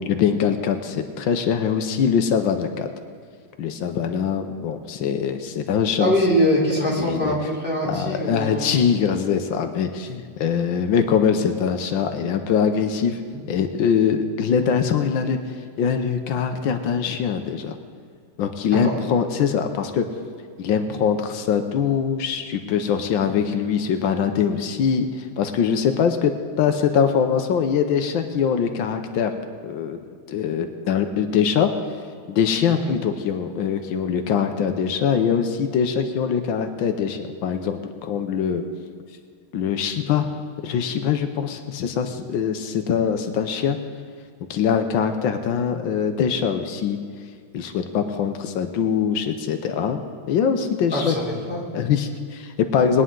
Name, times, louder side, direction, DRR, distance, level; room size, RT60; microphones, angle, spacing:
voice 1, 0.1-2.9 3.6-6.1 7.0-7.4 7.9-13.2 13.5-15.4 15.8-17.8 18.4-20.1 20.6-26.3 26.6-29.3 29.6-30.0 30.3-31.7 32.3-38.6 39.5-40.3 40.6-43.8 44.5-47.0 47.5-50.0 50.3-51.1 51.7-53.0, left 7 dB, 85° left, 7 dB, 1.6 m, -22 dB
voice 2, 6.0-8.6 18.7-19.0 32.7-32.9 42.6-42.7 50.9-51.6, equal, 5° right, -7 dB, 3.3 m, -23 dB
21.0 x 9.7 x 3.8 m, 2.1 s
omnidirectional pair, 2.1 m